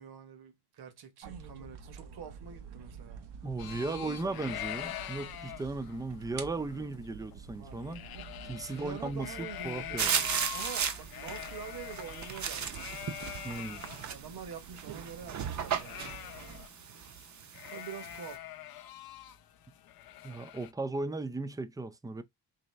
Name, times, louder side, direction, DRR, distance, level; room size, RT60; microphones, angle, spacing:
voice 1, 0.0-3.2 3.8-4.6 8.6-12.7 14.0-16.0 17.7-18.5, right 7 dB, 65° right, 1.2 m, -46 dB
sound 1, 1.2-16.7, right 6 dB, 85° right, 0.9 m, -49 dB
voice 2, 3.4-8.0 8.4-9.3 9.6-10.1 13.4-13.8 20.2-22.2, right 3 dB, 10° right, 0.4 m, -36 dB
sound 2, 3.6-14.0 14.4-14.5 14.7-16.9 17.1-17.3 17.5-20.7, left 12 dB, 65° left, 0.6 m, -44 dB
sound 3, 10.0-18.3, right 7 dB, 45° right, 0.7 m, -36 dB
4.0 x 3.2 x 3.2 m
cardioid pair, 105°, 40 cm